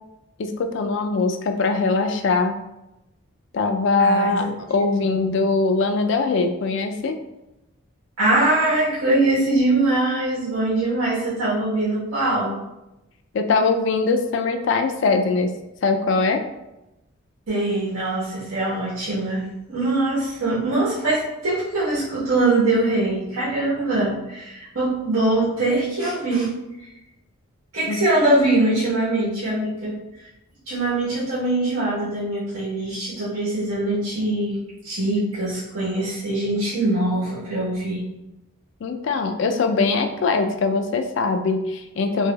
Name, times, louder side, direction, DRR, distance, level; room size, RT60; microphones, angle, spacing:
voice 1, 0.4-2.6 3.5-7.2 13.3-15.5 15.8-16.4 27.9-28.0 38.8-42.3, left 3 dB, 55° left, 6 dB, 0.3 m, -21 dB
voice 2, 4.0-5.4 8.2-12.6 17.5-26.5 26.8-26.9 27.7-30.0 30.7-38.1, right 2 dB, 90° right, -9 dB, 1.0 m, -23 dB
3.2 x 2.9 x 2.2 m, 0.93 s
head